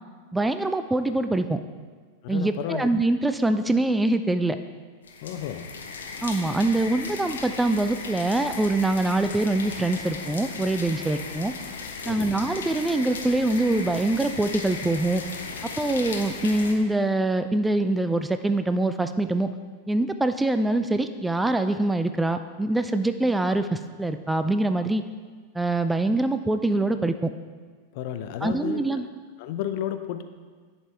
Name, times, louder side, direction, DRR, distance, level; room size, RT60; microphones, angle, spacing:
voice 1, 0.3-1.6 2.3-4.6 6.2-11.5 12.1-15.2 15.8-19.5 19.9-25.0 25.6-27.3 28.4-29.1, right 2 dB, 5° right, 9 dB, 0.3 m, -24 dB
voice 2, 2.2-2.9 5.2-5.7 12.0-12.4 27.9-29.0 29.4-30.2, left 10 dB, 50° left, 9 dB, 0.5 m, -32 dB
sound 1, 5.0-16.7, left 4 dB, 65° left, 0.8 m, -36 dB
11.0 x 5.4 x 3.4 m, 1.5 s
figure-of-eight pair, 90°, 0 cm